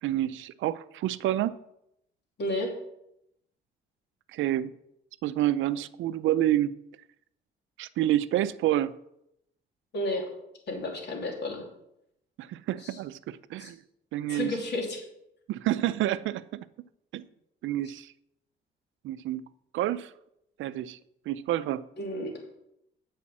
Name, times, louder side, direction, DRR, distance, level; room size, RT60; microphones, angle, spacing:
voice 1, 0.0-1.5 4.3-4.7 5.2-6.7 7.8-8.9 12.4-13.8 14.1-14.6 15.5-16.7 17.1-17.3 17.6-18.1 19.0-19.4 19.7-20.1 20.6-21.0 21.3-21.8, right 13 dB, 75° right, 0.5 m, -28 dB
voice 2, 2.4-2.7 9.9-10.2 10.7-11.6 13.6-13.7 14.3-15.0 22.0-22.3, left 1 dB, 60° left, 3.0 m, -31 dB
8.4 x 5.6 x 7.3 m
cardioid pair, 90°, 20 cm